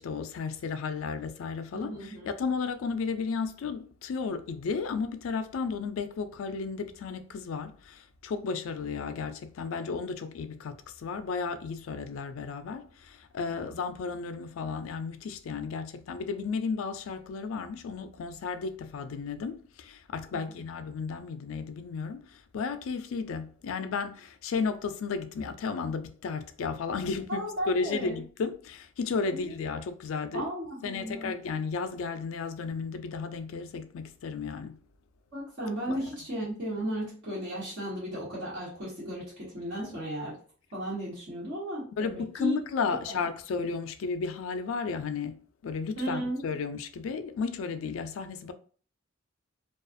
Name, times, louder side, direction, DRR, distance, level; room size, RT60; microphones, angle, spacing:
voice 1, 0.0-30.5 30.8-34.8 35.9-36.1 39.8-40.0 42.0-48.5, left 5 dB, 80° left, 0.3 m, -33 dB
voice 2, 1.7-2.3 13.5-13.7 20.3-20.5 27.3-28.2 29.3-29.5 30.3-31.3 35.3-40.3 40.7-42.6 42.9-43.2 46.0-46.4, right 1 dB, 55° right, 1.3 m, -35 dB
2.4 x 2.3 x 2.5 m
head